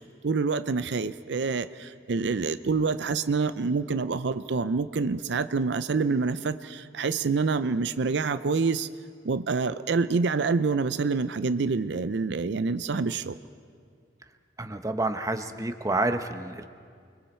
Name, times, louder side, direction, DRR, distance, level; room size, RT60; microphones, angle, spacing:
voice 1, 0.0-8.9 9.2-13.4, right 4 dB, 70° right, 12 dB, 0.5 m, -27 dB
voice 2, 14.6-16.7, right 2 dB, 20° right, 7 dB, 0.9 m, -29 dB
29.0 x 22.0 x 4.4 m, 2.2 s
head